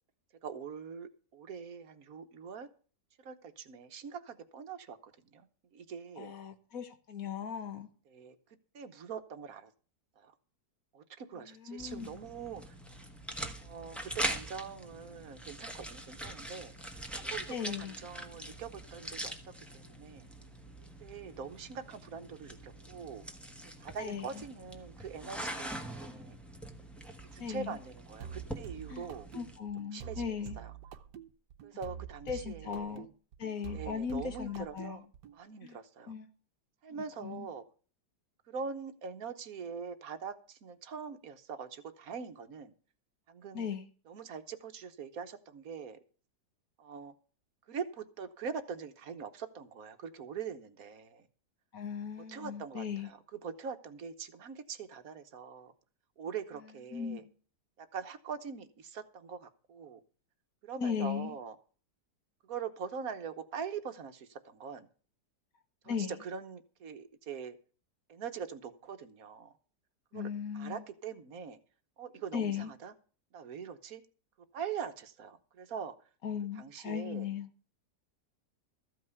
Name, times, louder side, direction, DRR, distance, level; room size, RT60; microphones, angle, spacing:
voice 1, 0.4-2.7 3.2-5.5 5.7-6.3 8.1-8.4 8.7-9.7 10.2-10.3 10.9-12.7 13.6-16.7 17.2-20.3 21.0-23.2 23.8-26.4 27.3-29.3 29.9-30.2 30.6-30.7 31.6-33.0 33.7-35.1 35.3-36.1 36.8-37.6 38.5-42.7 43.3-43.7 44.1-46.0 46.8-47.1 47.7-51.3 52.2-55.7 56.2-57.2 57.8-60.0 60.6-61.5 62.5-64.9 65.8-67.6 68.1-69.6 70.1-71.6 72.0-72.9 73.3-74.0 74.5-75.9 76.5-77.3, right 6 dB, 60° right, 9 dB, 1.4 m, -43 dB
voice 2, 6.2-7.9 11.4-12.2 17.5-18.0 24.0-24.4 27.4-27.8 28.9-29.1 29.3-30.6 32.3-33.1 33.4-35.0 35.6-35.8 36.1-36.3 36.9-37.5 43.5-43.9 51.7-53.1 56.9-57.3 60.8-61.4 65.9-66.1 70.1-70.8 72.3-72.7 76.2-77.5, left 7 dB, 60° left, 9 dB, 1.7 m, -37 dB
sound 1, 11.8-29.6, right 1 dB, ahead, 1.2 m, -43 dB
sound 2, 28.2-35.4, right 8 dB, 90° right, 1.5 m, -46 dB
14.0 x 5.5 x 8.0 m, 0.40 s
omnidirectional pair, 1.8 m